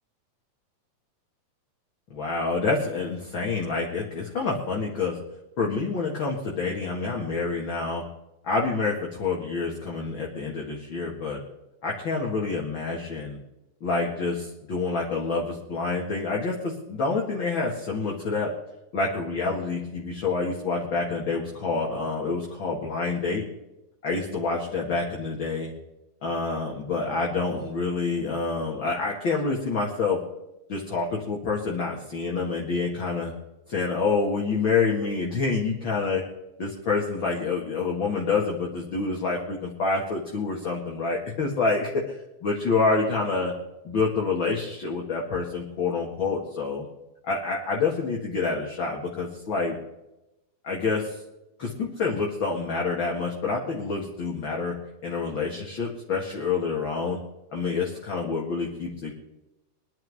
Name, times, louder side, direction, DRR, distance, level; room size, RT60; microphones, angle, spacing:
voice 1, 2.1-5.2 5.6-8.0 8.4-11.4 11.8-13.4 13.8-18.5 18.9-23.4 24.0-25.7 26.2-30.2 30.7-33.3 33.7-36.2 36.6-42.2 42.4-43.5 43.8-46.9 47.2-49.8 50.6-51.2 51.6-54.7 55.0-57.2 57.5-59.1, left 4 dB, 40° left, -3 dB, 2.5 m, -27 dB
24.0 x 10.5 x 3.6 m, 0.94 s
omnidirectional pair, 3.5 m